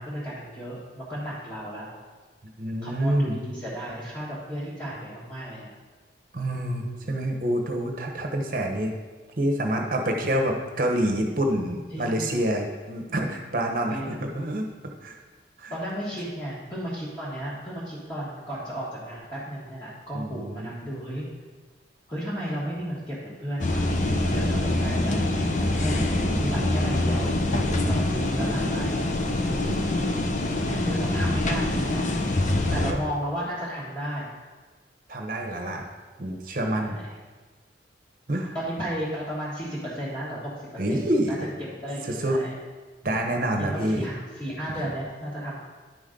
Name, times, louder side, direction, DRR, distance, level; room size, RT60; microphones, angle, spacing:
voice 1, 0.0-1.9 2.8-5.7 6.8-7.1 11.9-12.3 13.9-14.3 15.7-21.3 22.1-27.4 27.9-30.1 30.7-32.0 32.7-34.3 36.8-37.0 38.5-42.5 43.6-45.5, equal, 20° left, -11 dB, 1.6 m, -34 dB
voice 2, 2.6-3.4 6.3-8.9 9.4-14.7 15.0-15.2 15.6-15.7 20.1-20.9 24.7-25.3 25.9-26.5 28.2-28.7 32.9-33.0 35.1-35.8 36.2-37.0 38.3-38.5 40.8-41.5 42.0-42.4 43.0-44.0, right 1 dB, 50° right, 2 dB, 1.0 m, -27 dB
sound 1, 23.6-32.9, left 1 dB, 40° left, 0.6 m, -25 dB
10.5 x 5.2 x 3.8 m, 1.3 s
head